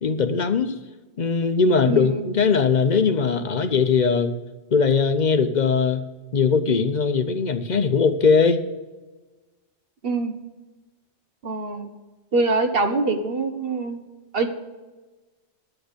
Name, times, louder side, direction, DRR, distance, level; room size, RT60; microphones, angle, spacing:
voice 1, 0.0-0.7 1.2-4.4 4.7-6.1 6.3-8.6, left 5 dB, 45° left, 9 dB, 0.8 m, -20 dB
voice 2, 1.8-2.3 10.0-10.3 11.4-11.9 12.3-14.0 14.3-14.5, right 3 dB, 55° right, 6 dB, 1.1 m, -24 dB
10.5 x 8.8 x 5.2 m, 1.2 s
omnidirectional pair, 1.2 m